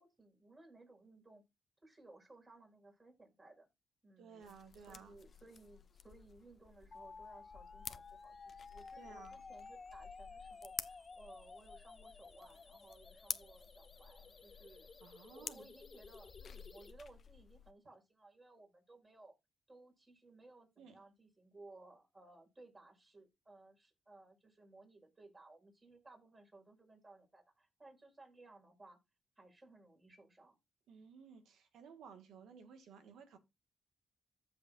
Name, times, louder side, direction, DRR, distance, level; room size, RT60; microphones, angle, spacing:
voice 1, 0.0-1.4 1.8-3.7 4.0-14.9 15.3-19.3 19.7-29.0 29.4-30.6, right 2 dB, 30° right, 5.7 m, -60 dB
voice 2, 4.2-5.2 9.0-9.3 15.0-15.7 20.8-21.0 30.9-33.4, right 6 dB, 85° right, 1.9 m, -56 dB
sound 1, 4.4-17.7, left 6 dB, 55° left, 0.7 m, -51 dB
sound 2, 6.9-16.9, left 4 dB, 40° left, 1.9 m, -54 dB
15.0 x 5.3 x 2.6 m
cardioid pair, 70°, 0 cm